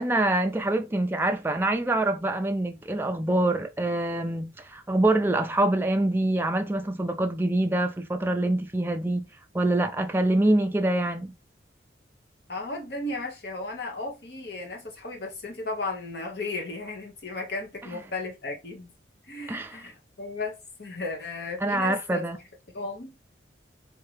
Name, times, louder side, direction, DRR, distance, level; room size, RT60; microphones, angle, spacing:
voice 1, 0.0-9.3 9.5-11.3 19.5-19.7 21.6-22.4, right 1 dB, 10° right, 0.3 m, -25 dB
voice 2, 12.5-18.9 19.2-22.2 22.7-23.1, left 2 dB, 60° left, 1.1 m, -35 dB
3.7 x 2.8 x 3.2 m
head